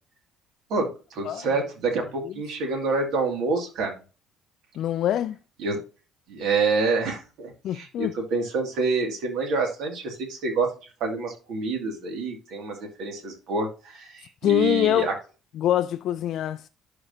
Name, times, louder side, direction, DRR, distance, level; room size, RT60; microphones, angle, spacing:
voice 1, 0.7-4.0 5.6-5.8 6.3-10.7 11.0-15.1, right 4 dB, 60° right, 2.4 m, -27 dB
voice 2, 4.8-5.4 7.6-8.1 14.4-15.1 15.6-16.7, left 12 dB, 60° left, 0.4 m, -24 dB
11.0 x 4.8 x 2.8 m
hypercardioid pair, 50°, 0 cm